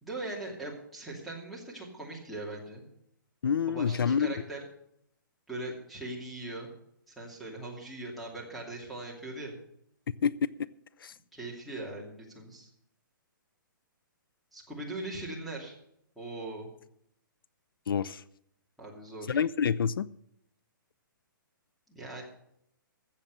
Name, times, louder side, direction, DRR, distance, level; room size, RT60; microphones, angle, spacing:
voice 1, 0.0-2.8 3.7-4.6 5.5-6.7 7.1-9.6 11.3-12.7 14.5-15.7 16.2-16.7 18.8-19.4 21.9-22.2, right 2 dB, ahead, -4 dB, 2.6 m, -40 dB
voice 2, 3.4-4.3 10.2-10.3 11.0-11.1 17.9-18.2 19.3-20.1, left 7 dB, 90° left, 19 dB, 0.5 m, -27 dB
15.0 x 7.3 x 6.7 m, 0.75 s
hypercardioid pair, 165°, 11 cm